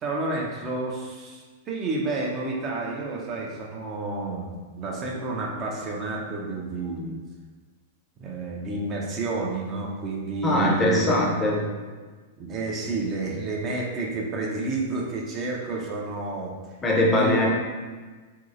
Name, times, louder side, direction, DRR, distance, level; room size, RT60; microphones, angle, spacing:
voice 1, 0.0-7.2 8.2-11.1 11.5-11.7 12.4-16.5 17.1-17.5, right 3 dB, 30° right, -2 dB, 0.5 m, -30 dB
voice 2, 10.4-11.6 16.8-17.5, left 1 dB, 20° left, -2 dB, 0.6 m, -21 dB
3.0 x 2.7 x 2.5 m, 1.4 s
figure-of-eight pair, 100°, 0 cm